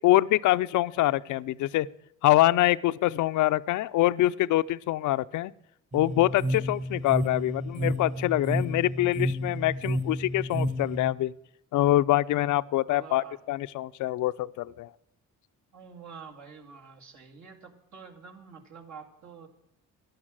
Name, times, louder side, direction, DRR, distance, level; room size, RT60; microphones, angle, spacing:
voice 1, 0.0-1.9 2.2-5.5 5.9-11.3 11.7-14.9, left 15 dB, 75° left, 15 dB, 0.5 m, -25 dB
sound 1, 5.9-11.1, equal, 25° right, 1.3 m, -31 dB
voice 2, 12.9-13.4 15.7-19.5, right 5 dB, 70° right, 2 dB, 2.4 m, -47 dB
11.5 x 10.5 x 7.4 m, 0.80 s
cardioid pair, 90°, 30 cm